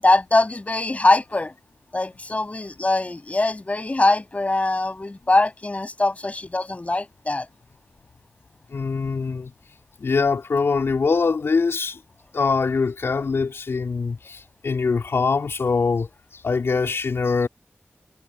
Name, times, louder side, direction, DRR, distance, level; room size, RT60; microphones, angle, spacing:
voice 1, 0.0-1.5 1.9-7.5, left 2 dB, 35° left, 6.8 m, -22 dB
voice 2, 8.7-9.5 10.0-12.0 12.3-16.1 16.3-17.5, left 4 dB, 85° left, 3.8 m, -23 dB
wide cardioid pair, 80°, 4 cm